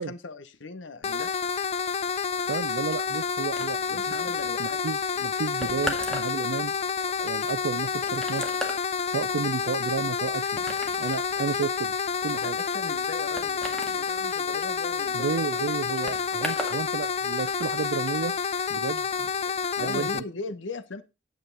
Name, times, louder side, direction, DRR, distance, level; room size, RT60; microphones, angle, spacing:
voice 1, 0.0-1.4 3.9-4.8 12.3-15.5 19.8-21.0, left 3 dB, 80° left, 0.9 m, -38 dB
sound 1, 1.0-20.2, left 6 dB, 35° left, 0.4 m, -29 dB
voice 2, 2.5-4.2 4.6-6.7 7.2-11.9 12.2-12.6 15.1-18.3 18.7-20.2, right 6 dB, 85° right, 0.4 m, -32 dB
sound 2, 3.6-16.8 17.1-17.7, equal, 5° left, 1.9 m, -39 dB
9.1 x 9.0 x 3.9 m
head